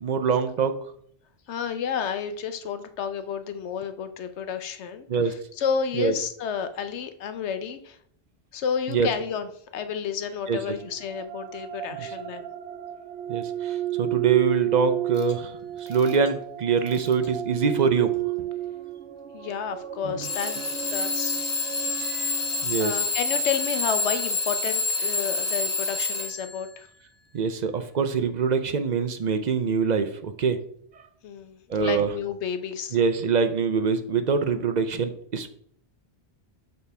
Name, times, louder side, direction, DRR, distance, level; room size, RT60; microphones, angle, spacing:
voice 1, 0.0-0.7 5.1-5.3 6.0-6.1 8.9-9.1 10.5-10.6 13.3-13.4 14.0-15.4 15.9-16.4 16.6-18.1 20.0-20.1 22.6-22.9 27.3-30.6 31.7-32.1 32.9-35.5, right 6 dB, 50° right, 9 dB, 0.5 m, -24 dB
voice 2, 1.5-8.0 8.5-12.4 19.3-21.6 22.2-22.4 22.8-26.9 31.2-33.0, left 7 dB, 80° left, 10 dB, 1.0 m, -31 dB
sound 1, 10.8-22.6, right 13 dB, 90° right, 0.9 m, -32 dB
Alarm / Clock, 15.2-15.3 15.9-16.3 16.9-17.3 18.1-18.2 20.2-26.6, left 3 dB, 40° left, 0.9 m, -28 dB
6.9 x 5.2 x 3.3 m, 0.63 s
omnidirectional pair, 1.1 m